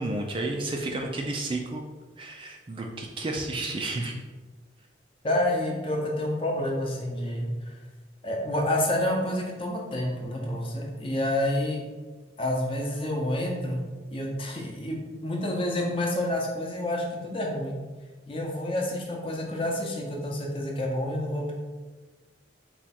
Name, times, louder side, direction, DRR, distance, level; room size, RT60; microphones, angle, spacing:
voice 1, 0.0-1.9 2.2-4.2, right 2 dB, 30° right, 1 dB, 0.3 m, -31 dB
voice 2, 5.2-7.5 8.2-11.8 12.4-17.7 18.3-21.5, left 1 dB, 30° left, -1 dB, 0.7 m, -29 dB
4.4 x 2.3 x 4.1 m, 1.3 s
head